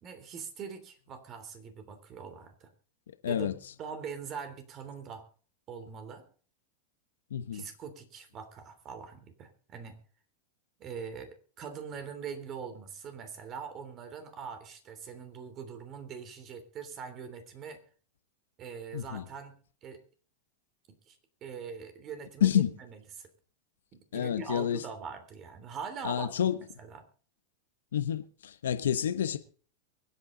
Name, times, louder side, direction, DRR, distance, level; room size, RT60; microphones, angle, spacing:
voice 1, 0.0-2.7 3.2-5.2 5.7-6.2 7.5-10.0 10.8-17.8 18.6-19.6 19.8-20.0 21.1-21.2 21.4-23.3 23.9-26.3 26.8-27.1, right 6 dB, 35° right, 3.2 m, -42 dB
voice 2, 3.2-3.6 7.3-7.7 18.9-19.2 22.4-22.7 24.1-24.8 26.0-26.6 27.9-29.4, left 9 dB, 90° left, 1.1 m, -29 dB
23.5 x 8.8 x 3.9 m
hypercardioid pair, 125°, 0 cm